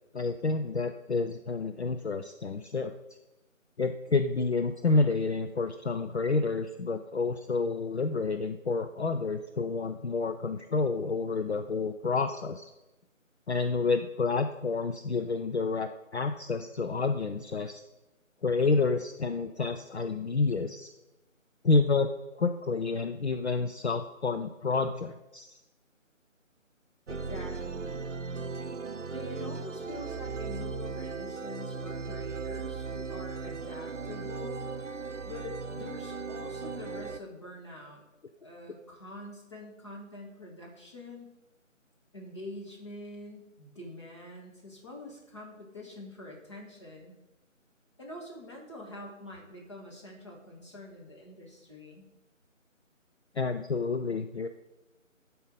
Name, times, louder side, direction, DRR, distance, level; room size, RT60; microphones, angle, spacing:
voice 1, 0.1-2.9 3.8-12.7 13.5-17.8 18.4-20.9 21.6-22.1 22.4-25.6 53.4-54.5, left 4 dB, 55° left, 7 dB, 0.5 m, -29 dB
voice 2, 27.1-28.1 29.1-34.7 35.2-38.0 38.4-41.3 42.1-47.2 48.0-52.1, left 1 dB, 20° left, -2 dB, 1.3 m, -45 dB
sound 1, 27.1-37.2, right 4 dB, 65° right, 0.8 m, -37 dB
10.5 x 4.5 x 5.0 m, 1.0 s
figure-of-eight pair, 160°, 40 cm